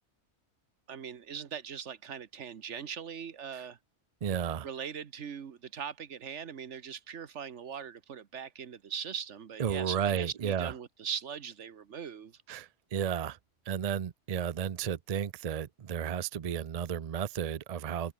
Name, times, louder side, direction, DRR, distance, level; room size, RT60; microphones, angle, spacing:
voice 1, 0.9-3.8 4.6-12.4, right 7 dB, 75° right, 1.4 m, -40 dB
voice 2, 4.2-4.7 9.6-10.7 12.5-13.4 13.7-18.1, right 8 dB, 45° right, 0.6 m, -33 dB
open air
omnidirectional pair, 1.2 m